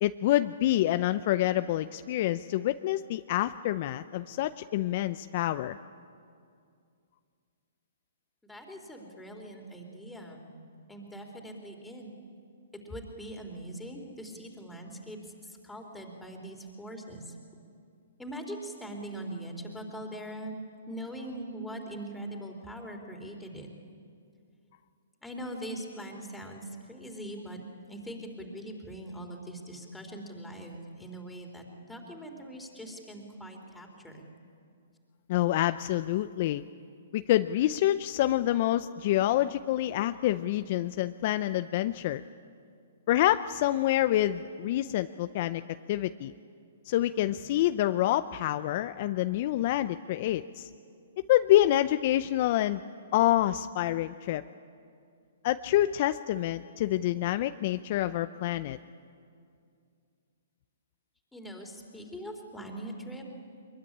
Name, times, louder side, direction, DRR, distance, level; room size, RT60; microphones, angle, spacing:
voice 1, 0.0-5.8 35.3-36.6 37.1-42.2 43.1-45.6 45.9-46.3 46.9-50.7 51.3-52.8 53.1-54.4 55.4-58.8, left 14 dB, 45° left, 11 dB, 0.6 m, -27 dB
voice 2, 8.4-10.5 10.9-12.1 12.8-17.3 18.2-23.7 25.2-27.6 27.9-34.2 61.3-63.3, right 1 dB, 5° left, 2 dB, 3.6 m, -42 dB
23.5 x 22.0 x 10.0 m, 2.3 s
hypercardioid pair, 140°, 0 cm